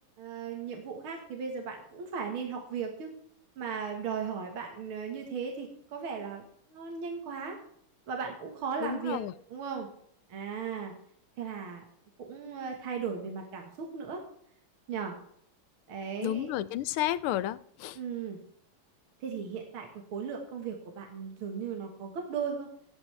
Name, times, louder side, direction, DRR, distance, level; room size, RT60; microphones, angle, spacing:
voice 1, 0.2-3.1 3.6-7.6 8.1-9.2 9.5-9.9 10.3-10.9 11.4-11.9 12.2-14.2 14.9-15.1 15.9-16.5 17.9-18.4 19.2-22.7, right 6 dB, 75° right, 2.4 m, -36 dB
voice 2, 8.8-9.3 16.2-18.0, left 13 dB, 85° left, 1.5 m, -31 dB
17.5 x 9.1 x 3.4 m
omnidirectional pair, 2.4 m